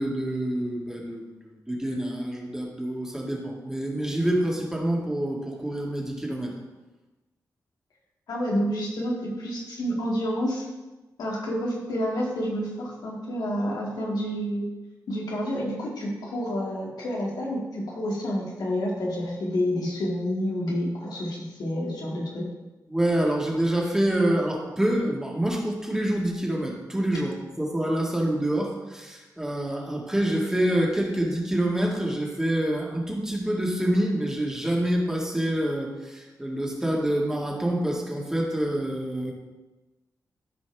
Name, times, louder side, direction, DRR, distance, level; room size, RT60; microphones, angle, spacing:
voice 1, 0.0-6.5 22.9-39.3, right 1 dB, 10° right, -1 dB, 1.9 m, -27 dB
voice 2, 8.3-10.7 11.2-14.7 15.1-22.4, equal, 85° left, -4 dB, 2.3 m, -29 dB
14.0 x 5.2 x 3.5 m, 1.1 s
wide cardioid pair, 105°, 7 cm